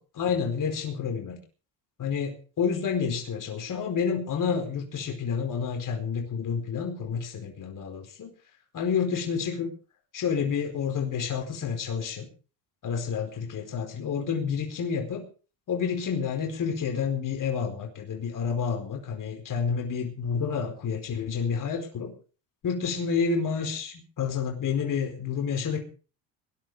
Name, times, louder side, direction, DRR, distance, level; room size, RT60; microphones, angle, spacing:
voice 1, 0.1-1.4 2.0-8.3 8.7-9.7 10.1-12.3 12.8-15.2 15.7-22.1 22.6-25.8, left 6 dB, 45° left, 3 dB, 4.5 m, -29 dB
20.5 x 11.0 x 4.9 m, 0.36 s
supercardioid pair, 95°, 43 cm